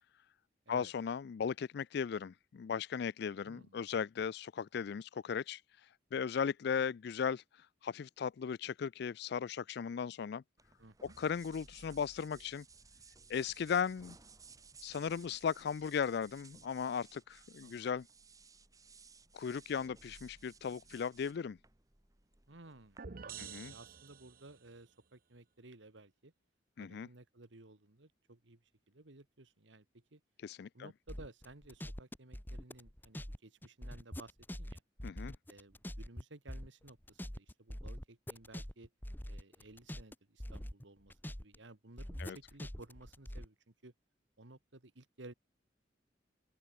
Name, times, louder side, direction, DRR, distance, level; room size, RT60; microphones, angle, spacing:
voice 1, 0.7-5.6 6.1-7.4 7.8-10.4 11.2-12.6 13.3-14.2 14.8-18.1 19.3-21.6 23.4-23.7 26.8-27.1 30.4-30.9 35.0-35.3 42.2-42.4, left 6 dB, 60° left, 0.4 m, -37 dB
voice 2, 3.4-3.8 10.8-11.2 17.6-17.9 22.5-26.3 26.8-30.2 30.7-34.8 35.5-38.9 39.3-43.9 44.4-45.3, right 2 dB, 70° right, 1.9 m, -56 dB
sound 1, 10.6-23.0, right 4 dB, 20° right, 1.6 m, -59 dB
sound 2, 23.0-24.7, right 6 dB, 50° right, 0.8 m, -48 dB
sound 3, 31.1-33.4 33.6-36.2 36.5-40.1 40.4-41.6 42.0-43.5, equal, 10° left, 1.3 m, -44 dB
open air
head